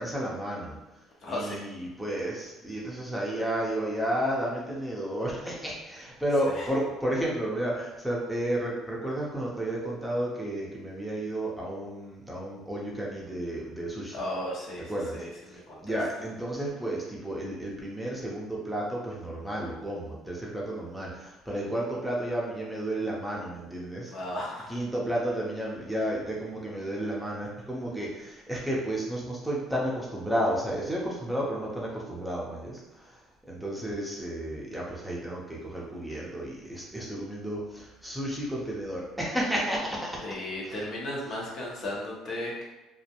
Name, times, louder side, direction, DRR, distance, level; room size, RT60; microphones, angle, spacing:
voice 1, 0.0-14.1 14.9-24.1 24.7-40.2 40.6-40.8, right 1 dB, ahead, -4 dB, 0.7 m, -32 dB
voice 2, 1.2-1.7 6.5-6.7 14.1-16.0 24.1-24.8 40.2-42.6, left 1 dB, 55° left, -4 dB, 0.8 m, -35 dB
2.3 x 2.1 x 2.8 m, 1.1 s
supercardioid pair, 85°, 0 cm